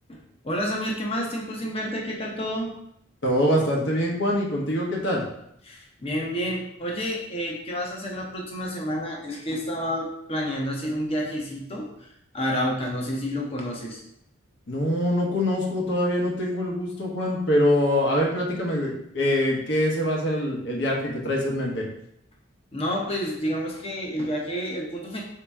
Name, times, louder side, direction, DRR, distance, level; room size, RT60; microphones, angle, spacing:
voice 1, 0.1-2.8 5.6-12.1 12.3-14.0 22.7-25.2, equal, 30° left, -1 dB, 0.7 m, -29 dB
voice 2, 3.2-5.2 14.7-21.8, left 1 dB, 60° left, -2 dB, 1.0 m, -24 dB
4.2 x 2.8 x 3.5 m, 0.75 s
head